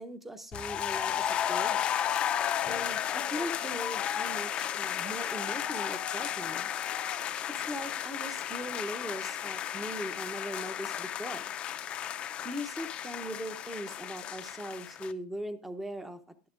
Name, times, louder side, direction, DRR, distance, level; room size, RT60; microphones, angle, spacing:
voice 1, 0.0-1.8 2.7-6.7 7.5-11.5 12.4-16.2, equal, 5° right, 12 dB, 0.7 m, -40 dB
sound 1, 0.5-15.1, left 10 dB, 30° left, 0.4 m, -33 dB
12.5 x 11.0 x 2.4 m, 0.35 s
supercardioid pair, 145°, 4 cm